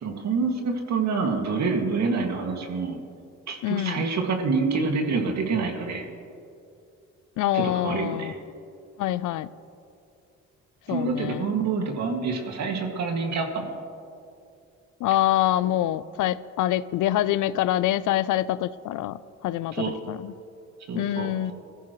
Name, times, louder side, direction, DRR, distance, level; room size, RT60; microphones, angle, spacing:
voice 1, 0.0-3.0 3.5-6.0 7.5-8.3 10.9-13.6 19.8-19.9 20.9-21.3, right 4 dB, 65° right, 2 dB, 2.2 m, -27 dB
voice 2, 3.6-4.0 7.4-8.3 9.0-9.5 10.9-11.5 15.0-20.3 20.9-21.5, left 13 dB, 80° left, 16 dB, 0.5 m, -25 dB
23.5 x 14.5 x 3.2 m, 2.5 s
cardioid pair, 90°, 30 cm